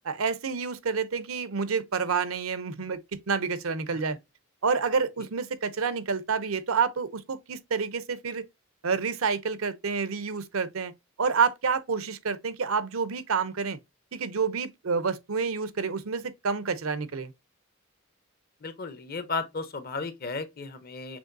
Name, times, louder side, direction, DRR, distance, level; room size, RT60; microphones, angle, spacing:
voice 1, 0.0-4.2 4.6-8.4 8.8-10.9 11.2-13.8 14.1-17.3, right 5 dB, 80° right, 0.7 m, -28 dB
voice 2, 18.6-21.2, left 3 dB, 45° left, 0.8 m, -34 dB
6.2 x 3.2 x 2.6 m
head